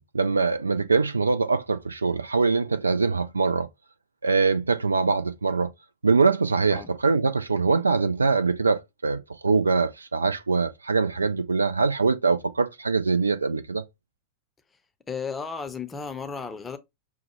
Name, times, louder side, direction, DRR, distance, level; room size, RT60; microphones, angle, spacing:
voice 1, 0.0-3.7 4.2-5.7 6.0-13.8, right 4 dB, 75° right, 0.3 m, -23 dB
voice 2, 15.1-16.8, left 5 dB, 15° left, 0.6 m, -34 dB
5.7 x 2.1 x 3.0 m
figure-of-eight pair, 90°, 0 cm